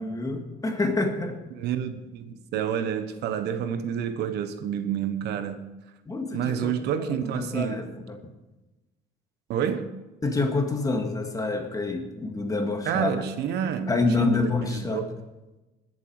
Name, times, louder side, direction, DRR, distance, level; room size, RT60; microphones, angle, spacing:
voice 1, 0.0-1.4 6.1-8.2 10.2-13.2 13.9-15.1, left 3 dB, 20° left, 4 dB, 2.0 m, -27 dB
voice 2, 1.5-5.7 6.3-7.8 9.5-9.9 12.8-13.9 14.2-15.1, right 8 dB, 80° right, 10 dB, 1.1 m, -29 dB
19.5 x 7.6 x 4.8 m, 1.1 s
cardioid pair, 110°, 17 cm